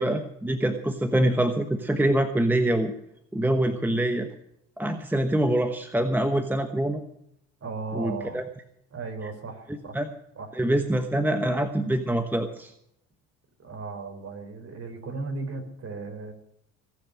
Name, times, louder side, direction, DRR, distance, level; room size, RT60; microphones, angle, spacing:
voice 1, 0.0-2.9 3.3-4.3 4.8-7.0 7.9-8.4 9.9-10.1 10.5-12.7, right 1 dB, 5° right, 7 dB, 1.2 m, -25 dB
voice 2, 7.6-8.4 8.9-10.0 10.4-10.5 13.6-16.3, right 4 dB, 35° right, 5 dB, 4.4 m, -36 dB
19.5 x 6.9 x 8.7 m, 0.76 s
supercardioid pair, 85°, 39 cm